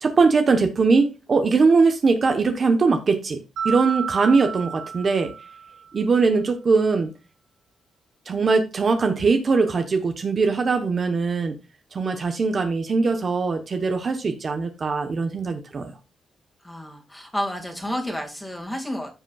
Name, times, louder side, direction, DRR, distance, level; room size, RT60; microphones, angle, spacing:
voice 1, 0.0-3.4 3.6-5.3 5.9-7.1 8.3-11.6 11.9-15.9, right 4 dB, 40° right, 1.0 m, -21 dB
Mallet percussion, 3.6-5.9, right 6 dB, 75° right, 1.2 m, -31 dB
voice 2, 16.6-19.1, equal, 5° left, 2.1 m, -30 dB
15.0 x 5.2 x 2.4 m
cardioid pair, 130°, 0 cm